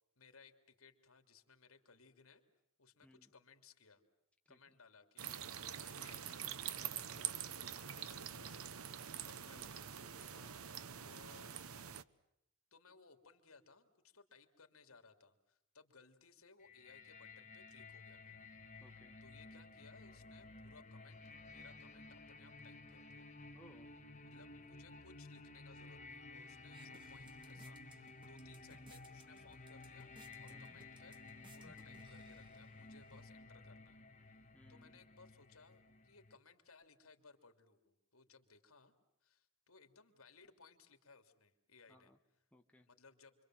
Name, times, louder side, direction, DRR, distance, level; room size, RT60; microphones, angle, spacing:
voice 1, 0.2-2.4 2.8-4.1 4.5-5.4 5.7-8.7 9.2-10.7 11.0-11.6 12.7-18.5 18.7-18.8 19.2-23.3 24.3-30.1 30.4-31.2 31.5-34.0 34.7-38.9 39.2-42.1 42.9-43.4, left 4 dB, 80° left, 7 dB, 3.1 m, -64 dB
voice 2, 3.0-3.3 4.4-4.8 9.4-9.8 10.3-10.6 18.8-19.2 23.5-23.9 30.5-30.8 34.5-35.0 41.9-42.2 42.5-42.9, left 1 dB, 5° left, 3 dB, 1.5 m, -64 dB
sound 1, 5.2-12.0, right 9 dB, 90° right, 0.9 m, -45 dB
sound 2, 16.6-36.4, left 3 dB, 35° left, 2.0 m, -55 dB
sound 3, 26.3-33.2, right 2 dB, 25° right, 2.3 m, -66 dB
29.5 x 24.5 x 7.8 m, 0.82 s
head